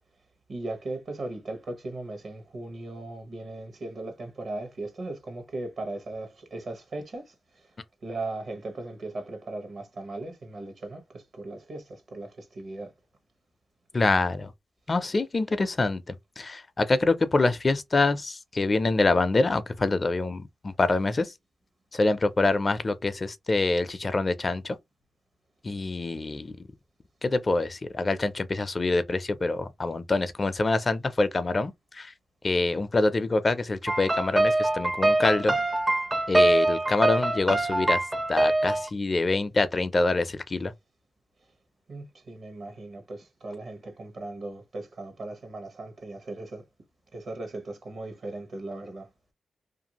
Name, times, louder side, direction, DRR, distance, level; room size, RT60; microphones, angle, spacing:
voice 1, 0.5-7.3 8.0-12.9 41.9-46.6 47.1-49.1, right 2 dB, 65° right, 1.0 m, -38 dB
voice 2, 13.9-14.5 14.9-21.3 21.9-24.8 25.6-26.5 27.2-32.1 32.4-35.5 36.3-38.0 38.3-40.7, left 3 dB, 40° left, 0.4 m, -25 dB
sound 1, 33.9-38.9, right 2 dB, 20° right, 0.4 m, -24 dB
2.6 x 2.3 x 2.9 m
cardioid pair, 60°, 0 cm